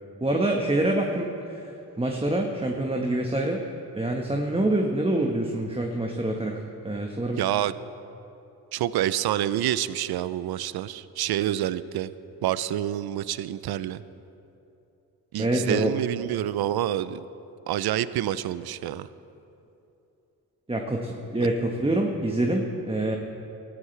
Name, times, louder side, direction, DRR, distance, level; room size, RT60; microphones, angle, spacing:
voice 1, 0.2-3.6 3.9-7.4 15.4-15.9 20.7-23.2, right 1 dB, 10° right, 1 dB, 1.4 m, -26 dB
voice 2, 7.4-7.7 8.7-12.1 12.4-14.0 15.3-17.2 17.7-19.1 21.4-21.5, right 12 dB, 55° right, 16 dB, 0.6 m, -27 dB
19.0 x 13.5 x 3.4 m, 2.8 s
hypercardioid pair, 45°, 45 cm